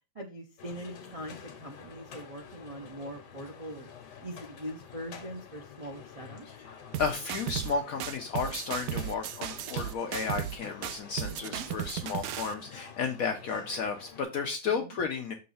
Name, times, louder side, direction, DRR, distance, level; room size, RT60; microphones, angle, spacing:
voice 1, 0.1-3.9 4.2-6.4 11.2-11.6 14.7-15.0, right 1 dB, 40° right, 2 dB, 0.5 m, -42 dB
sound 1, 0.6-14.2, left 7 dB, 90° left, 1.6 m, -49 dB
sound 2, 6.9-7.7 8.0-10.6 10.8-12.5, right 11 dB, 70° right, 1.0 m, -35 dB
voice 2, 7.0-15.3, left 5 dB, 65° left, 4 dB, 1.1 m, -33 dB
6.6 x 3.1 x 5.5 m, 0.31 s
omnidirectional pair, 1.8 m